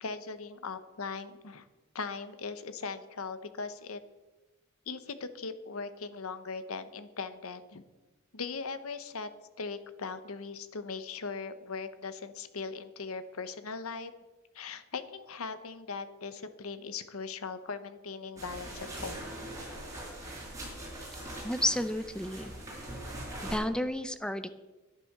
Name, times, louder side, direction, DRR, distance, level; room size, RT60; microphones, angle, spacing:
voice 1, 0.0-1.7 1.9-4.0 4.9-7.8 8.3-9.3 9.6-14.1 14.5-19.2, left 4 dB, 80° left, 11 dB, 1.0 m, -39 dB
sound 1, 18.4-23.6, right 1 dB, 15° right, 5.6 m, -42 dB
voice 2, 21.4-22.5 23.4-24.5, left 1 dB, 5° left, 11 dB, 0.6 m, -31 dB
11.0 x 10.5 x 6.6 m, 1.1 s
head